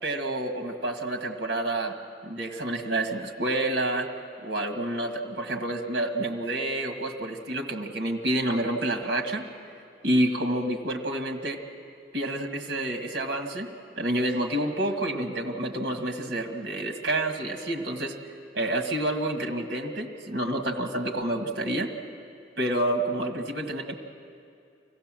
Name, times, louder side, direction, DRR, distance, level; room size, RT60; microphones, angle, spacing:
voice 1, 0.0-1.9 2.2-4.1 4.4-9.4 10.0-11.6 12.1-13.7 14.0-18.2 18.5-21.9 22.6-23.9, right 1 dB, 60° right, 3 dB, 1.5 m, -28 dB
25.5 x 16.0 x 7.5 m, 2.5 s
head